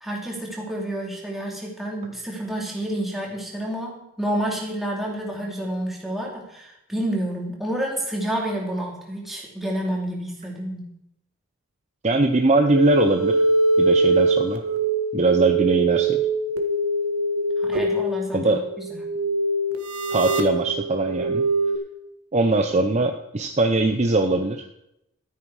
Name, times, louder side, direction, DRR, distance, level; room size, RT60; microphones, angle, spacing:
voice 1, 0.0-10.9 17.6-18.6, right 1 dB, ahead, -3 dB, 2.8 m, -29 dB
voice 2, 12.0-13.4 13.8-14.6 15.1-16.2 18.3-18.6 20.1-21.4 22.3-24.6, right 2 dB, 30° right, 5 dB, 0.7 m, -21 dB
sound 1, 12.6-21.8, right 2 dB, 75° right, 1.5 m, -23 dB
13.0 x 9.3 x 4.8 m, 0.82 s
head